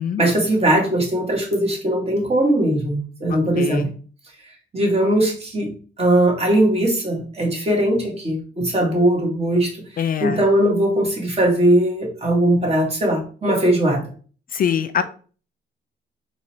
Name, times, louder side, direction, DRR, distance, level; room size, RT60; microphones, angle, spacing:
voice 1, 0.2-3.9 4.7-5.7 6.0-9.9 10.2-14.1, right 1 dB, 30° right, 0 dB, 1.8 m, -19 dB
voice 2, 3.3-3.9 10.0-10.4 14.5-15.0, left 8 dB, 45° left, 11 dB, 0.4 m, -24 dB
3.7 x 3.2 x 4.3 m, 0.40 s
cardioid pair, 90°, 20 cm